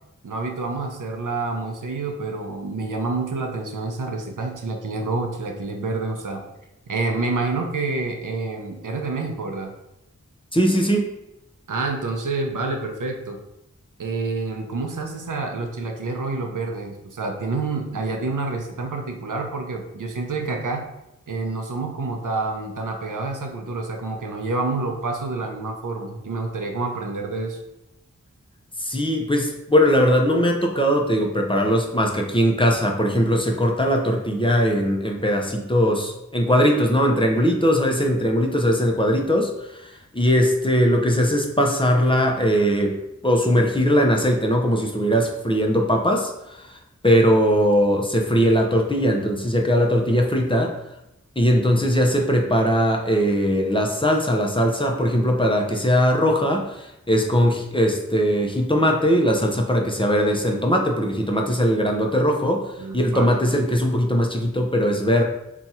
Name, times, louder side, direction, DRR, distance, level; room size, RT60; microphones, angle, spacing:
voice 1, 0.2-6.4 6.9-9.7 11.7-13.4 14.0-20.9 21.3-27.6 62.8-63.4, right 3 dB, 85° right, 3 dB, 0.6 m, -28 dB
voice 2, 10.5-11.1 28.8-43.0 43.2-46.8 47.0-50.7 51.4-65.2, equal, 15° left, 1 dB, 0.5 m, -20 dB
2.8 x 2.3 x 4.1 m, 0.88 s
wide cardioid pair, 40°, 31 cm